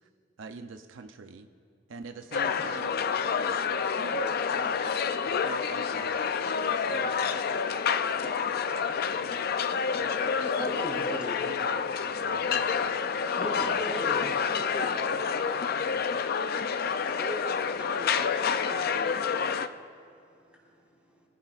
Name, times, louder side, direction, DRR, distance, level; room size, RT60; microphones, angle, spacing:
voice 1, 0.4-1.5 1.9-4.9 5.3-6.3 6.8-9.5 10.0-13.0 13.5-13.9, right 4 dB, 80° right, 7 dB, 0.6 m, -45 dB
sound 1, 2.3-19.7, left 6 dB, 50° left, 0.4 m, -28 dB
voice 2, 10.4-11.4 13.4-14.5 19.9-21.3, equal, 5° right, -3 dB, 3.5 m, -41 dB
voice 3, 13.3-15.4 17.2-19.6, right 1 dB, 25° right, 0 dB, 0.9 m, -41 dB
24.0 x 16.0 x 2.4 m, 2.5 s
head